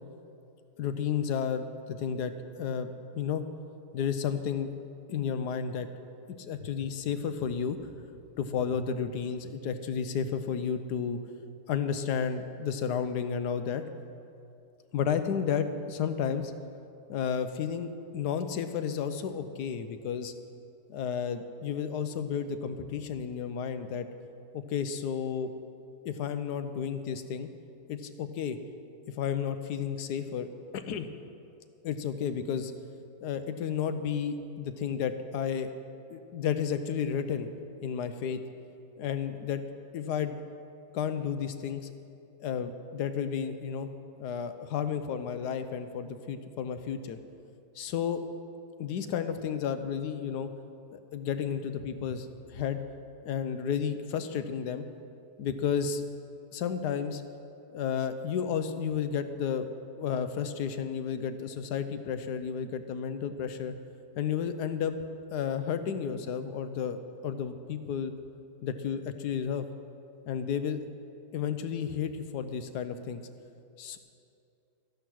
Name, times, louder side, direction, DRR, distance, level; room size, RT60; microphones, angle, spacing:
voice 1, 0.8-3.4 3.9-4.7 5.1-5.9 6.4-7.8 8.4-11.2 11.7-13.8 14.9-16.5 17.1-20.3 20.9-24.1 24.5-25.5 26.0-27.5 27.9-28.6 29.2-31.0 31.8-32.7 33.2-35.7 36.1-37.5 37.8-38.4 39.0-39.6 39.9-40.4 40.9-41.9 42.4-43.9 44.2-47.2 47.8-48.2 48.8-50.5 50.9-52.8 53.2-54.9 55.4-56.1 56.5-57.2 57.7-59.7 60.0-63.7 64.2-64.9 65.3-68.1 68.6-69.6 70.3-70.8 71.3-73.2 73.8-74.0, left 7 dB, 80° left, 10 dB, 1.3 m, -32 dB
13.5 x 10.5 x 6.3 m, 2.6 s
omnidirectional pair, 1.7 m